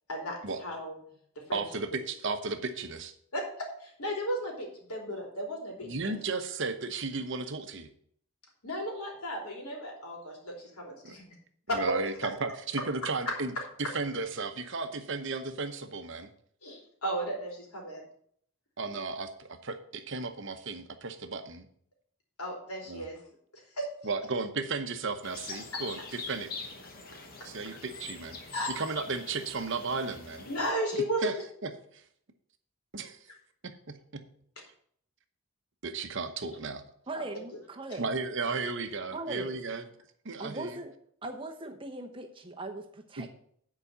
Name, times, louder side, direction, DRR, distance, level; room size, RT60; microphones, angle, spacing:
voice 1, 0.1-1.0 1.4-1.6 3.3-6.1 8.6-11.3 11.7-11.8 16.6-18.0 22.4-23.2 23.5-23.9 28.5-28.7 30.5-31.3 37.1-37.2, equal, 80° left, 0 dB, 3.3 m, -35 dB
voice 2, 1.5-3.1 5.8-7.9 11.0-11.2 11.7-13.5 13.8-16.3 18.8-21.7 22.9-23.0 24.0-26.5 27.4-28.4 28.8-30.5 31.2-31.3 31.6-32.0 32.9-33.2 33.6-34.2 35.8-36.8 38.0-39.8 40.2-40.8 43.2-43.3, right 3 dB, 55° right, 8 dB, 0.9 m, -34 dB
sound 1, 25.2-30.7, left 4 dB, 40° left, 1.2 m, -43 dB
voice 3, 37.1-38.1 39.1-39.6 40.4-40.9 41.2-43.3, right 2 dB, 25° right, 4 dB, 0.9 m, -39 dB
9.8 x 4.9 x 6.8 m, 0.63 s
head